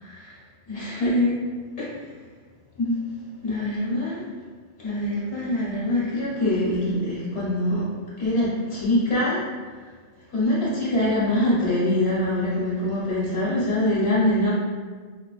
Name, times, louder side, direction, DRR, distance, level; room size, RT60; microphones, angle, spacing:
voice 1, 0.0-0.3 0.7-1.4 1.8-1.9 2.8-3.0 3.4-4.3 4.8-7.9 8.2-9.4 10.3-14.5, left 1 dB, 80° left, -8 dB, 1.7 m, -24 dB
5.3 x 2.4 x 2.4 m, 1.5 s
omnidirectional pair, 1.1 m